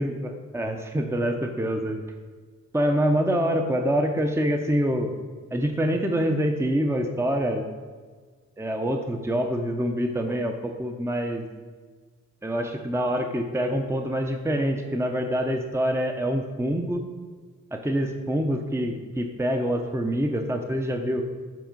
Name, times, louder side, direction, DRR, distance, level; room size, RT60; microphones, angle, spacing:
voice 1, 0.0-2.0 2.7-5.1 5.5-7.6 8.6-11.5 12.4-17.0 17.7-21.2, equal, 10° right, 4 dB, 0.7 m, -26 dB
7.6 x 5.3 x 5.3 m, 1.5 s
cardioid pair, 70°, 30 cm